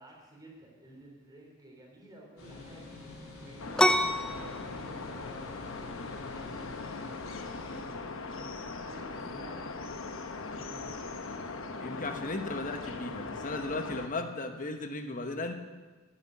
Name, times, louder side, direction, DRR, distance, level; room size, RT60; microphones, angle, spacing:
voice 1, 0.0-2.9 3.4-6.8 7.7-8.0 8.4-10.8, right 1 dB, 20° right, -1 dB, 3.5 m, -53 dB
sound 1, 2.4-7.8, left 3 dB, 90° left, 3.5 m, -47 dB
sound 2, 3.6-14.1, left 3 dB, 65° left, 1.1 m, -40 dB
sound 3, 3.8-11.2, left 1 dB, 5° left, 0.5 m, -33 dB
voice 2, 11.8-15.5, left 2 dB, 40° left, 6 dB, 1.2 m, -36 dB
12.0 x 9.7 x 8.9 m, 1.3 s
head